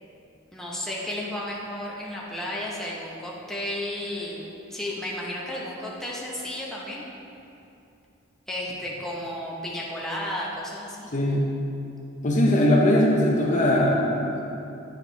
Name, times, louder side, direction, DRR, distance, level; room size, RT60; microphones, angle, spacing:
voice 1, 0.5-7.1 8.5-11.1, left 1 dB, ahead, -5 dB, 0.9 m, -33 dB
voice 2, 11.1-11.5 12.2-14.5, left 1 dB, 40° left, -3 dB, 0.7 m, -20 dB
9.0 x 4.8 x 3.4 m, 2.7 s
head